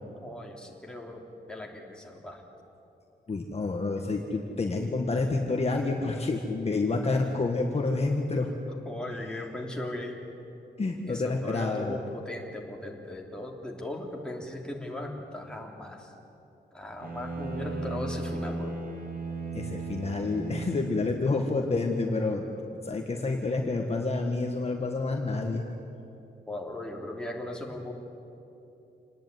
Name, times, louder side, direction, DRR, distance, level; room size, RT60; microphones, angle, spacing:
voice 1, 0.0-2.4 8.8-10.2 11.1-16.1 16.7-18.7 26.5-27.9, left 1 dB, 5° left, -1 dB, 3.2 m, -38 dB
voice 2, 3.3-8.5 10.8-12.0 19.5-22.4 22.8-25.7, left 3 dB, 35° left, 2 dB, 1.7 m, -28 dB
Bowed string instrument, 17.0-21.5, right 3 dB, 50° right, 3.3 m, -36 dB
27.0 x 19.5 x 9.5 m, 2.9 s
wide cardioid pair, 165°, 18 cm